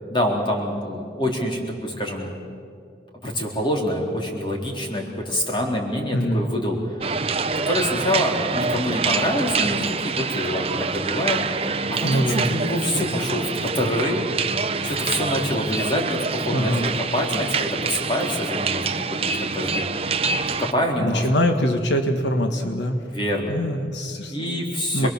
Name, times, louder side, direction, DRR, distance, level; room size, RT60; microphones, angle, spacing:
voice 1, 0.1-2.3 3.2-6.8 7.7-11.4 11.9-14.2 14.8-19.8 20.6-21.3 23.1-23.6 24.3-25.1, left 1 dB, 25° left, 0 dB, 3.7 m, -26 dB
voice 2, 6.1-6.5 12.0-12.4 16.5-16.9 21.0-23.0 23.5-25.1, equal, 80° left, 5 dB, 1.5 m, -23 dB
sound 1, 7.0-20.7, right 4 dB, 30° right, 0.8 m, -26 dB
27.5 x 21.5 x 7.3 m, 2.3 s
head